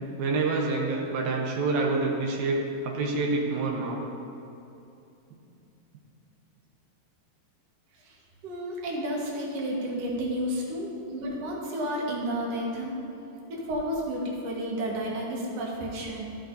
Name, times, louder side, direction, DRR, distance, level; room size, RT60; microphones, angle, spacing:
voice 1, 0.2-4.0, right 3 dB, 80° right, -1 dB, 2.6 m, -27 dB
voice 2, 8.4-13.0 13.5-16.2, equal, 60° right, -3 dB, 2.0 m, -31 dB
13.5 x 6.1 x 2.6 m, 2.8 s
omnidirectional pair, 4.1 m